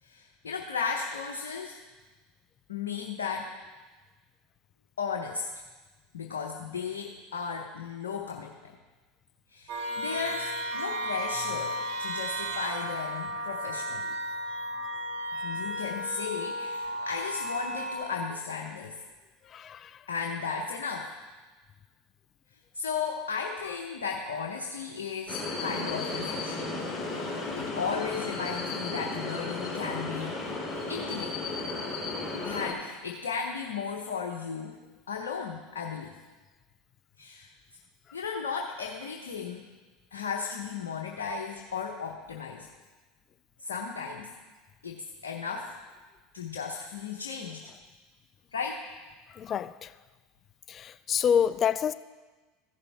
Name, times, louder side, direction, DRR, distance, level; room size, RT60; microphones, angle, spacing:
voice 1, 0.0-1.8 2.7-3.5 5.0-5.5 6.1-8.7 9.5-14.1 15.3-19.0 20.1-21.1 22.7-26.7 27.5-30.6 30.9-31.4 32.4-34.8 35.1-36.2 37.2-37.5 38.1-39.7 40.1-42.7 43.6-44.3 44.8-45.7 46.3-47.6 48.5-48.8, left 6 dB, 85° left, 0.9 m, -35 dB
sound 1, 9.7-18.0, right 1 dB, 60° right, 1.4 m, -34 dB
voice 2, 19.5-19.9 49.3-49.9 50.7-51.9, left 8 dB, 40° left, 0.4 m, -27 dB
sound 2, 25.3-32.7, left 3 dB, 15° left, 3.2 m, -34 dB
15.0 x 6.8 x 3.5 m
hypercardioid pair, 85°, 0 cm